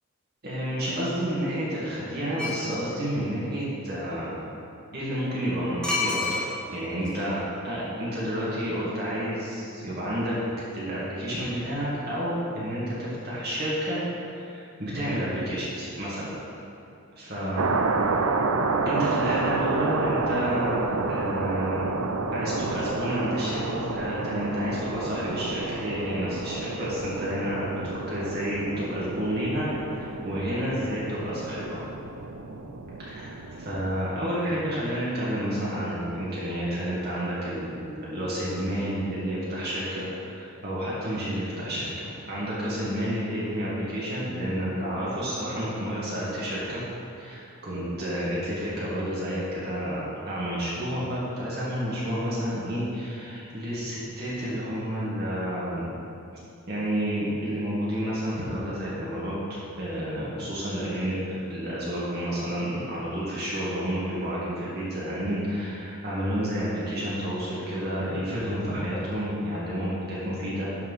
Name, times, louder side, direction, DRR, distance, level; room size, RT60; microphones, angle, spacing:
voice 1, 0.4-4.3 4.9-7.4 7.6-10.4 10.7-14.0 14.3-16.4 17.2-17.6 18.9-21.9 22.3-31.8 33.0-46.8 47.2-55.9 56.7-70.7, equal, 45° right, -8 dB, 2.0 m, -30 dB
sound 1, 2.4-2.7 5.8-6.8 7.0-7.1, left 3 dB, 5° left, 1.2 m, -27 dB
sound 2, 17.6-34.1, right 3 dB, 75° right, 0.6 m, -30 dB
11.0 x 4.6 x 5.7 m, 2.7 s
head